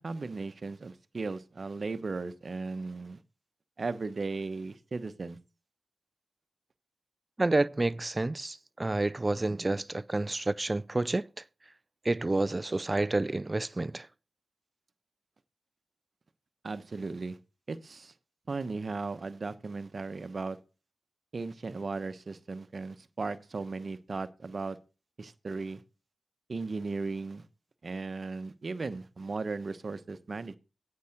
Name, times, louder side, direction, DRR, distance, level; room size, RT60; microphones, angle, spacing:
voice 1, 0.0-3.2 3.8-5.4 16.6-17.4 17.7-18.1 18.5-20.6 21.3-24.8 25.2-25.8 26.5-27.4 27.8-30.6, right 3 dB, 55° right, 1.0 m, -36 dB
voice 2, 7.4-11.4 12.0-14.1, right 2 dB, 30° right, 0.5 m, -29 dB
8.4 x 5.7 x 7.9 m
supercardioid pair, 40°, 0 cm